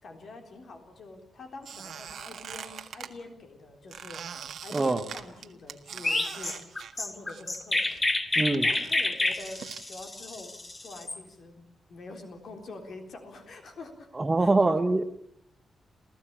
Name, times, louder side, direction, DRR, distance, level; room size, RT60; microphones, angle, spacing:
voice 1, 0.0-4.2 4.6-8.1 8.6-11.6 11.9-14.1 14.4-14.8, left 3 dB, 50° left, 5 dB, 3.7 m, -45 dB
Squeak, 1.6-3.1 3.9-7.6 7.9-9.8, right 8 dB, 60° right, 1.6 m, -42 dB
voice 2, 4.7-5.0 8.4-8.7 14.1-15.0, right 2 dB, 15° right, 9 dB, 1.0 m, -24 dB
Chirp tweet, 6.0-11.2, left 2 dB, 20° left, 1.3 m, -28 dB
29.0 x 15.0 x 8.8 m, 0.76 s
wide cardioid pair, 175°, 0 cm